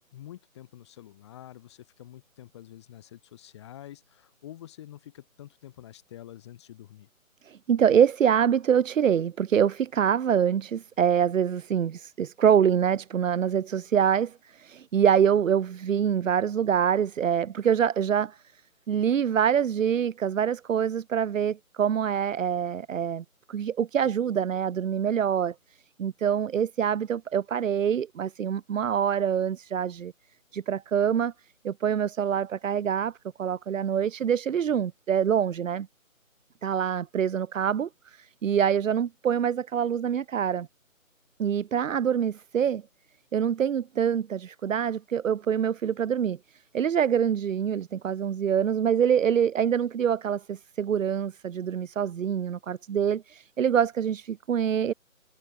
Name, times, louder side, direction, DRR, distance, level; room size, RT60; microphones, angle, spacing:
voice 1, 0.0-7.1, left 12 dB, 20° left, 4.1 m, -47 dB
voice 2, 7.4-18.4 18.9-25.5 26.0-30.1 30.5-31.3 31.6-33.1 33.4-35.9 36.6-40.7 41.4-42.8 43.3-54.9, right 8 dB, 65° right, 0.5 m, -25 dB
figure-of-eight pair, 160°, 42 cm